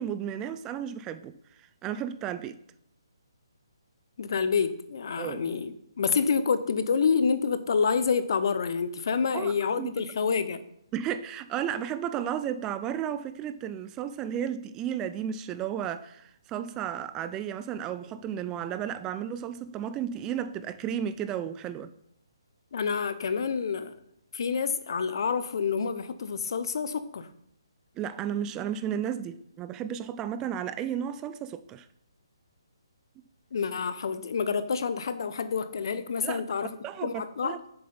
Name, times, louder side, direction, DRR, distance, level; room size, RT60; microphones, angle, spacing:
voice 1, 0.0-1.3 1.6-2.5 5.2-5.4 9.3-10.0 10.9-21.9 28.0-31.9 36.2-36.5 36.8-37.6, right 9 dB, 20° right, 0.3 m, -33 dB
voice 2, 4.2-10.6 22.7-23.9 24.3-27.3 33.5-36.8 37.0-37.6, left 5 dB, 55° left, 0.7 m, -28 dB
7.5 x 6.9 x 4.0 m
figure-of-eight pair, 145°, 3 cm